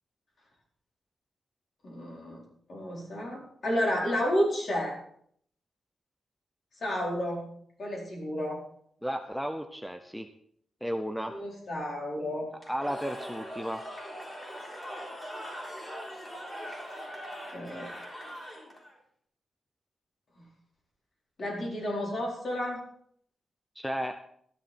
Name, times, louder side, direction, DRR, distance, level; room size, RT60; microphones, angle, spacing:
voice 1, 1.8-2.4 2.7-5.0 6.8-7.5 7.8-8.6 11.3-12.5 17.5-17.9 20.4-20.5 21.4-22.8, equal, 50° left, -2 dB, 4.4 m, -31 dB
voice 2, 9.0-10.3 10.8-11.4 12.7-13.8 23.8-24.2, equal, ahead, 7 dB, 0.7 m, -33 dB
Cheering / Crowd, 12.6-18.9, equal, 25° left, 3.7 m, -41 dB
12.5 x 10.5 x 4.4 m, 0.64 s
wide cardioid pair, 120°, 0 cm